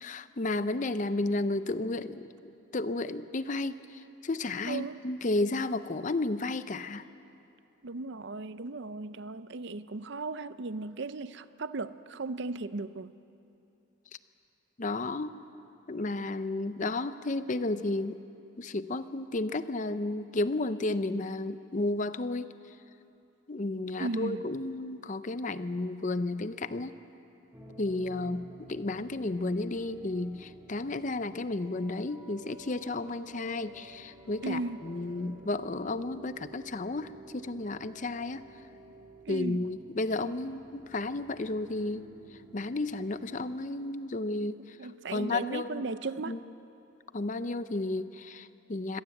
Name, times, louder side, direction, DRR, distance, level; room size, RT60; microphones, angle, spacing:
voice 1, 0.0-2.3 2.7-7.1 14.8-15.3 15.9-18.2 18.6-22.5 23.5-27.0 27.8-38.5 39.3-42.0 42.5-44.8 45.1-45.9 46.3-46.4 47.1-49.0, left 2 dB, 35° left, 13 dB, 0.6 m, -32 dB
voice 2, 4.6-5.0 7.8-13.1 24.0-24.4 34.4-34.8 39.3-39.6 44.8-46.4, right 3 dB, 55° right, 14 dB, 0.6 m, -36 dB
sound 1, 27.5-43.6, right 1 dB, 10° right, 1.6 m, -53 dB
24.5 x 17.5 x 7.8 m, 2.8 s
head